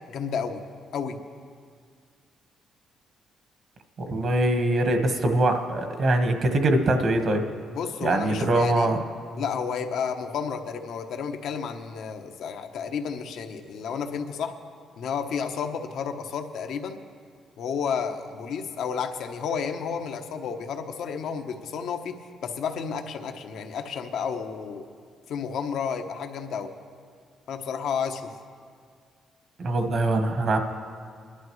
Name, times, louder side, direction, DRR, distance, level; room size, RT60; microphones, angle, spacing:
voice 1, 0.1-0.6 0.9-1.2 7.7-8.9 9.4-14.6 15.0-17.0 17.6-22.2 22.4-24.9 25.3-26.7 27.5-28.3, left 6 dB, 75° left, 5 dB, 0.9 m, -31 dB
voice 2, 4.1-7.4 8.0-9.0 29.6-30.6, right 2 dB, 55° right, 5 dB, 1.4 m, -23 dB
22.0 x 11.5 x 3.2 m, 2.1 s
cardioid pair, 90°, 0 cm